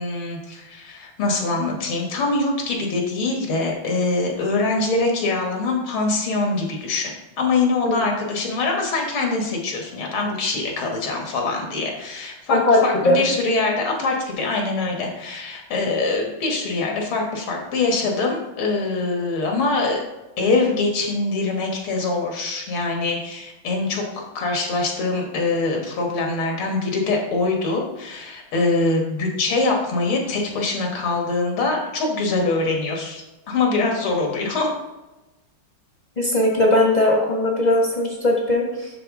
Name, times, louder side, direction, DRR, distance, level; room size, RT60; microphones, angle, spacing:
voice 1, 0.0-20.0 20.4-34.7, left 3 dB, 80° left, 1 dB, 2.2 m, -23 dB
voice 2, 7.8-8.2 12.5-13.2 36.2-38.9, left 1 dB, 35° left, -1 dB, 0.7 m, -19 dB
11.0 x 4.0 x 3.6 m, 1.0 s
omnidirectional pair, 2.2 m